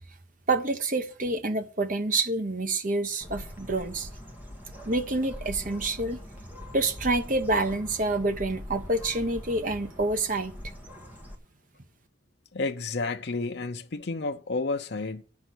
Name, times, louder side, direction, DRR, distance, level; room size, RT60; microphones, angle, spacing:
voice 1, 0.5-4.1 4.8-6.2 6.7-10.6, right 2 dB, 45° right, 1.2 m, -27 dB
Bird, 3.2-11.4, left 1 dB, 10° right, 1.6 m, -42 dB
voice 2, 12.5-15.2, left 3 dB, 60° left, 0.6 m, -31 dB
9.0 x 5.8 x 7.9 m
head